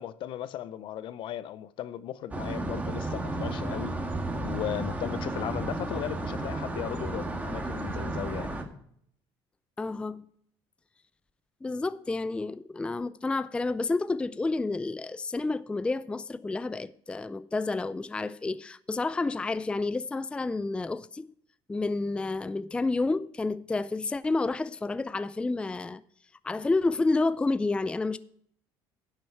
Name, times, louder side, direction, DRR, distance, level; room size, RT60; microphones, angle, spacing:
voice 1, 0.0-3.9 4.3-8.6, left 11 dB, 60° left, 0.6 m, -36 dB
sound 1, 2.3-8.6, right 2 dB, 15° right, 1.8 m, -33 dB
voice 2, 9.8-10.2 11.6-21.3 21.7-26.0 26.4-28.2, left 3 dB, 10° left, 0.4 m, -30 dB
11.0 x 7.7 x 4.6 m
cardioid pair, 105°, 10 cm